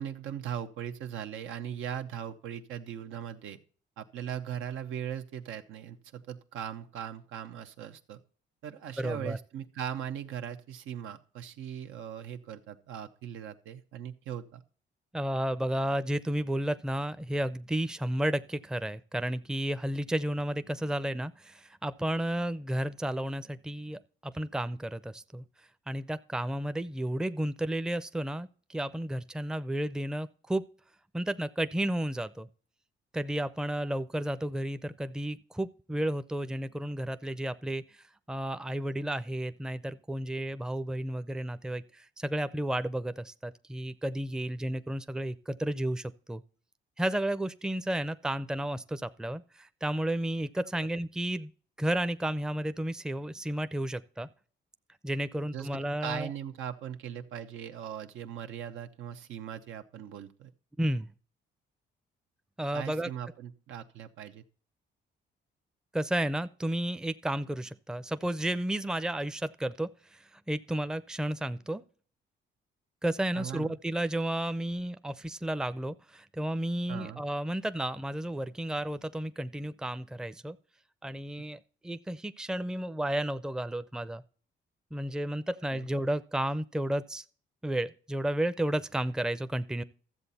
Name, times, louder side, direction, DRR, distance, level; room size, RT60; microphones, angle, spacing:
voice 1, 0.0-3.6 4.0-8.2 8.6-14.6 50.8-50.9 55.5-55.7 56.0-60.5 62.7-64.4 73.3-73.8 76.9-77.2 85.7-85.9, right 9 dB, 85° right, 1.0 m, -39 dB
voice 2, 9.0-9.4 15.1-25.4 25.9-30.6 31.1-32.5 33.1-37.8 38.3-46.4 47.0-51.5 51.8-54.3 55.0-56.3 60.8-61.1 62.6-63.1 65.9-70.2 70.5-71.8 73.0-80.6 81.0-84.2 84.9-87.2 87.6-89.8, right 1 dB, 5° right, 0.5 m, -32 dB
13.5 x 7.6 x 4.1 m
cardioid pair, 90°, 20 cm